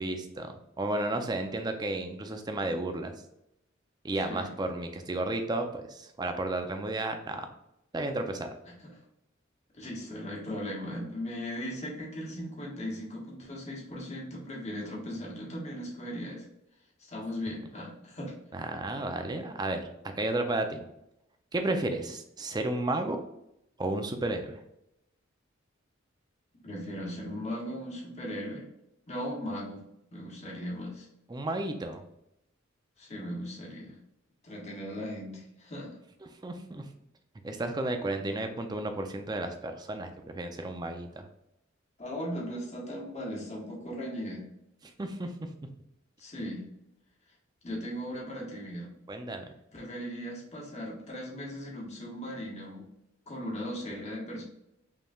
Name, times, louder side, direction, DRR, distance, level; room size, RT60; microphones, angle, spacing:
voice 1, 0.0-3.1 4.0-7.5 7.9-8.5 18.5-19.9 20.2-20.8 21.5-23.2 23.8-24.6 31.3-32.0 36.4-36.8 37.4-41.2 45.0-45.3 49.1-49.4, right 2 dB, 20° right, 6 dB, 0.4 m, -32 dB
voice 2, 8.7-9.0 9.7-16.5 17.0-18.3 26.6-28.6 29.1-29.8 30.1-31.1 33.0-34.0 34.4-36.0 42.0-44.4 46.2-46.6 47.6-48.9 49.7-52.9 53.3-54.4, equal, 35° left, -3 dB, 1.2 m, -38 dB
5.2 x 3.1 x 2.3 m, 0.83 s
head